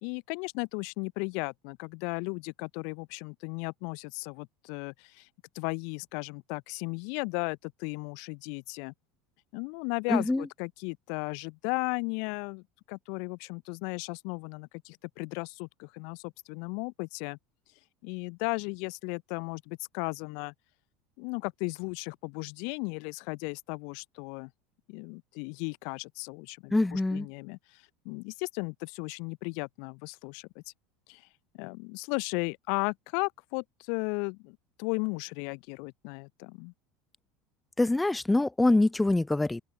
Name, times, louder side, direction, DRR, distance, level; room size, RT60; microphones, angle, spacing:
voice 1, 0.0-5.3 5.5-8.9 9.5-17.4 18.0-20.5 21.2-24.5 24.9-27.6 28.0-30.6 31.1-31.2 31.5-36.7, left 37 dB, 55° left, 0.6 m, -35 dB
voice 2, 10.1-10.5 26.7-27.3 37.8-39.6, left 2 dB, 10° left, 0.5 m, -24 dB
open air
figure-of-eight pair, 70°, 0 cm